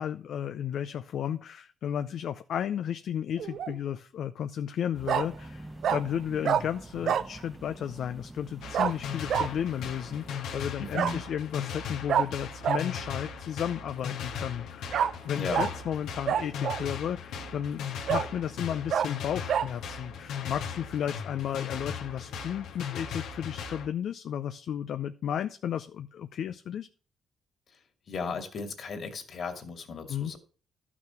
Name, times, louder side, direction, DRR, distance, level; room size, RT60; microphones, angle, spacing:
voice 1, 0.0-26.9 30.1-30.3, left 9 dB, 70° left, 9 dB, 0.5 m, -33 dB
Bark, 3.4-3.7 5.1-5.3 5.8-6.0 6.4-6.6 7.0-7.3 8.7-8.9 9.3-9.5 10.9-11.1 12.1-12.2 12.6-12.8 14.9-15.1 15.5-15.7 16.3-16.9 17.4-17.5 18.1-18.3 18.9-19.1 19.5-19.7, right 8 dB, 65° right, 0.6 m, -26 dB
sound 1, 4.9-10.4, right 1 dB, 15° right, 1.0 m, -46 dB
sound 2, 8.6-23.9, left 6 dB, 90° left, 1.6 m, -38 dB
voice 2, 10.8-11.2 15.4-15.7 28.1-30.4, left 4 dB, 55° left, 6 dB, 2.4 m, -35 dB
12.0 x 6.1 x 5.8 m, 0.38 s
cardioid pair, 90°, 0 cm